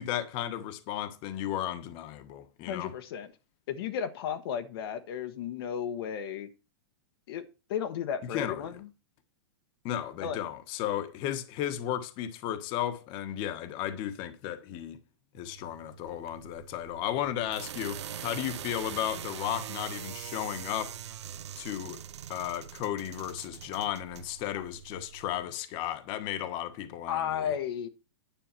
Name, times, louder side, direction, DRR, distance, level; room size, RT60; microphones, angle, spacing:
voice 1, 0.0-2.9 8.2-8.6 9.8-15.0 15.3-21.0 21.6-22.0 22.3-27.5, left 11 dB, 35° left, 1.4 m, -34 dB
voice 2, 2.7-3.3 3.7-6.5 7.3-7.4 7.7-8.9 10.2-10.4 27.1-27.9, left 8 dB, 60° left, 1.3 m, -33 dB
sound 1, 15.3-25.4, right 10 dB, 80° right, 0.9 m, -43 dB
10.5 x 4.7 x 7.5 m
hypercardioid pair, 145°, 14 cm